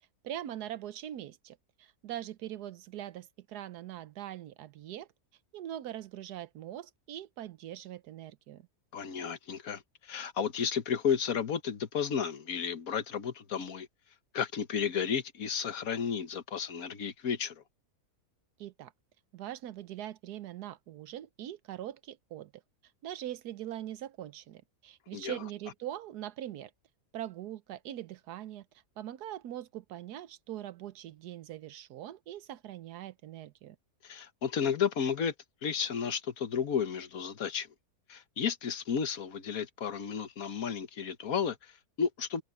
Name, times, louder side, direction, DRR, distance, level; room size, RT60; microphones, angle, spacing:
voice 1, 0.2-5.1 5.5-8.7 18.6-18.9 19.3-22.6 23.0-26.7 27.1-28.7 29.0-33.8, right 12 dB, 90° right, 1.3 m, -42 dB
voice 2, 8.9-13.9 14.3-17.6 25.1-25.4 34.0-35.3 35.6-37.7 38.1-42.4, left 7 dB, 65° left, 1.6 m, -33 dB
open air
omnidirectional pair, 1.6 m